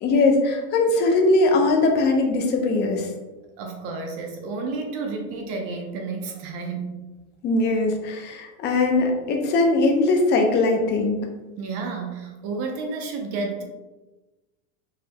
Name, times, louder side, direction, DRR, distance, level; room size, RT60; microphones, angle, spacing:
voice 1, 0.0-3.1 7.4-11.2, left 2 dB, 25° left, 2 dB, 0.5 m, -20 dB
voice 2, 3.6-7.0 11.6-13.6, right 4 dB, 35° right, 3 dB, 0.6 m, -31 dB
4.8 x 3.1 x 2.8 m, 1.1 s
supercardioid pair, 150°, 41 cm